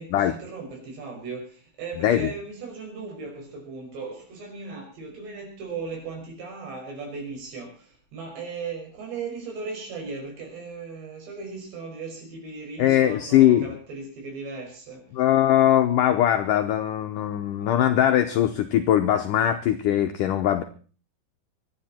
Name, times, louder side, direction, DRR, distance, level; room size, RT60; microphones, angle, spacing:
voice 1, 0.0-15.1, right 4 dB, 80° right, 1 dB, 8.0 m, -37 dB
voice 2, 12.8-13.7 15.1-20.6, left 11 dB, 80° left, 7 dB, 1.9 m, -21 dB
25.5 x 10.5 x 4.4 m, 0.40 s
omnidirectional pair, 4.9 m